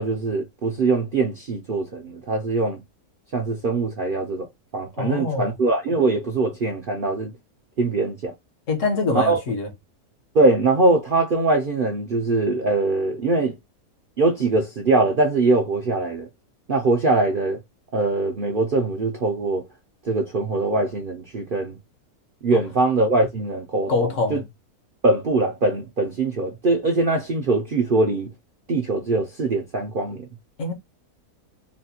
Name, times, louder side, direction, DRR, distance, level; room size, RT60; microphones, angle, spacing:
voice 1, 0.0-2.8 3.3-4.5 4.7-7.3 7.8-8.3 9.1-9.4 10.3-13.6 14.2-16.3 16.7-17.6 17.9-19.6 20.0-21.8 22.4-24.4 25.0-28.3 28.7-30.3, right 3 dB, 50° right, 0.6 m, -22 dB
voice 2, 5.0-5.5 8.7-9.7 23.9-24.4 30.6-30.7, left 3 dB, 55° left, 1.3 m, -24 dB
4.2 x 2.3 x 2.7 m
omnidirectional pair, 1.6 m